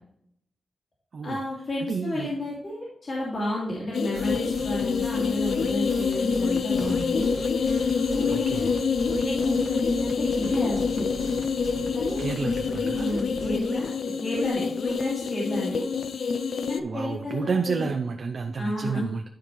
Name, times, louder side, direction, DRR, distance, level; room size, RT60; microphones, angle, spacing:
voice 1, 1.2-7.3 8.0-8.5 9.1-11.2 11.9-12.2 12.9-13.9 14.2-15.8 16.7-17.9 18.6-19.1, left 1 dB, 45° left, -6 dB, 2.4 m, -31 dB
voice 2, 1.8-2.3 8.3-8.7 12.2-13.1 16.8-19.2, right 5 dB, 50° right, 5 dB, 0.5 m, -30 dB
sound 1, 3.9-16.8, left 5 dB, 70° left, 0.5 m, -27 dB
sound 2, 4.1-13.6, right 2 dB, 70° right, 1.2 m, -41 dB
11.5 x 5.2 x 3.2 m, 0.76 s
wide cardioid pair, 175°, 0 cm